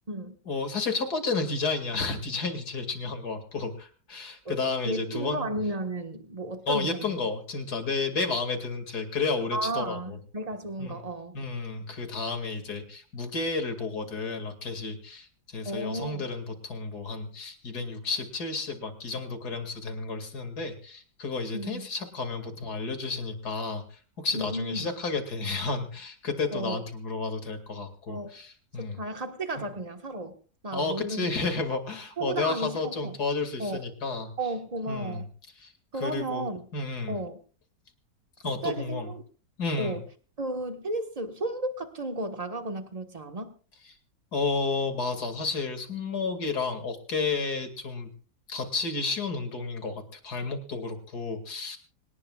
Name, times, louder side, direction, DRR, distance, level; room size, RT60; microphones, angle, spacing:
voice 1, 0.5-5.5 6.7-10.2 10.8-11.0 11.3-29.0 30.7-34.3 34.9-35.2 35.6-35.7 36.0-37.2 38.4-39.1 39.6-40.0 44.3-48.1 48.5-51.8, left 4 dB, 65° left, 7 dB, 2.9 m, -31 dB
voice 2, 4.8-7.1 9.5-11.4 15.6-16.3 21.5-21.9 24.3-24.9 26.5-26.8 28.1-28.3 28.8-30.4 30.6-31.3 32.2-33.2 33.6-33.8 34.4-35.3 35.9-36.7 37.1-37.4 38.6-39.2 39.8-40.0 40.4-43.6, right 2 dB, 20° right, 6 dB, 1.4 m, -33 dB
26.0 x 19.0 x 2.4 m, 0.39 s
omnidirectional pair, 1.9 m